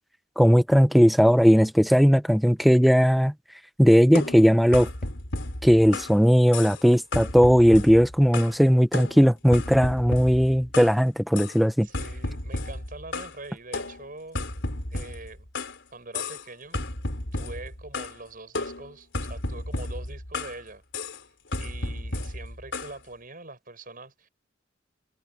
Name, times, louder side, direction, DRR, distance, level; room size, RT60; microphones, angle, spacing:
voice 1, 0.4-3.3 3.8-4.9 5.6-11.9, equal, ahead, 1.1 m, -18 dB
sound 1, 4.2-6.2 6.5-6.9 7.1-8.6 8.9-11.0 11.4-11.6 11.9-13.4 13.7-15.8 16.1-16.5 16.7-18.2 18.6-20.6 20.9-21.2 21.5-23.0, left 2 dB, 65° left, 4.6 m, -33 dB
voice 2, 11.8-14.4 14.9-15.5 15.9-16.9 17.3-20.8 21.6-24.3, right 2 dB, 45° right, 7.3 m, -43 dB
head